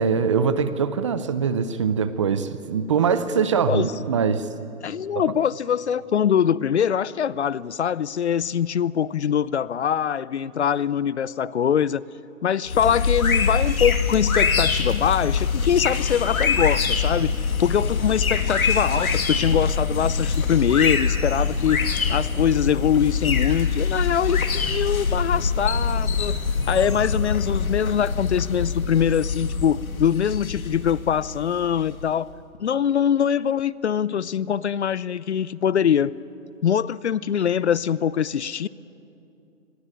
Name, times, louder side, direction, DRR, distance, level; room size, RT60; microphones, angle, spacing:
voice 1, 0.0-4.5, right 6 dB, 20° right, 0.7 m, -22 dB
voice 2, 4.8-12.0 12.4-26.4 26.7-32.3 32.6-36.2 36.6-38.7, left 8 dB, 55° left, 0.6 m, -23 dB
sound 1, 12.7-32.1, left 5 dB, 80° left, 2.9 m, -24 dB
28.0 x 22.0 x 9.1 m
hypercardioid pair, 155°, 42 cm